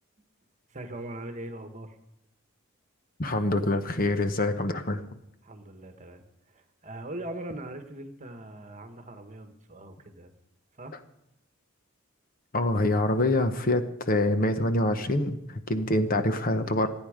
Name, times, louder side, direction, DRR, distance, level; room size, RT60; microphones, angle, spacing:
voice 1, 0.7-2.0 5.4-10.3 10.8-11.0 16.0-16.2 16.6-16.9, right 1 dB, 35° right, 7 dB, 1.4 m, -41 dB
voice 2, 3.2-5.0 12.5-16.9, left 1 dB, 40° left, 9 dB, 1.0 m, -25 dB
27.0 x 9.2 x 5.1 m, 0.82 s
head